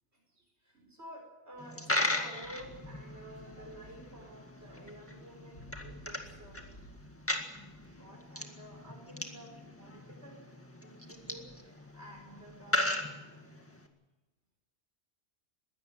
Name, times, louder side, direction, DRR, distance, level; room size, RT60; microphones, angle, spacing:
voice 1, 0.3-6.6 8.0-10.5 10.8-13.0, right 1 dB, 70° right, 1 dB, 5.3 m, -51 dB
Coin (dropping), 1.6-13.9, left 1 dB, 10° left, 1.9 m, -38 dB
sound 1, 2.4-10.0 10.7-10.8 11.1-12.8, equal, 90° left, 8.5 m, -57 dB
21.0 x 17.0 x 7.8 m, 1.1 s
omnidirectional pair, 1.2 m